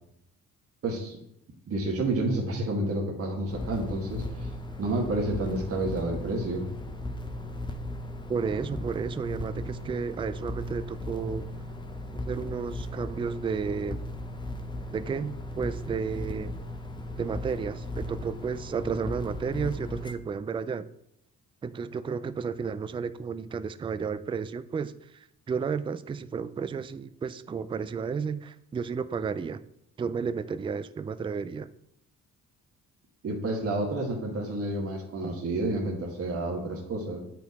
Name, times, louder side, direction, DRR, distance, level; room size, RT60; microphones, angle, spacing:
voice 1, 0.8-1.2 1.7-4.5 4.8-6.7 33.2-37.2, right 2 dB, 50° right, -1 dB, 1.5 m, -30 dB
sound 1, 3.5-20.1, left 1 dB, 15° left, 0.7 m, -37 dB
voice 2, 8.3-11.5 12.3-14.0 14.9-16.6 17.2-20.9 21.6-29.6 30.0-31.7, right 6 dB, 20° right, 13 dB, 0.3 m, -32 dB
8.1 x 4.5 x 4.1 m, 0.78 s
cardioid pair, 90°, 30 cm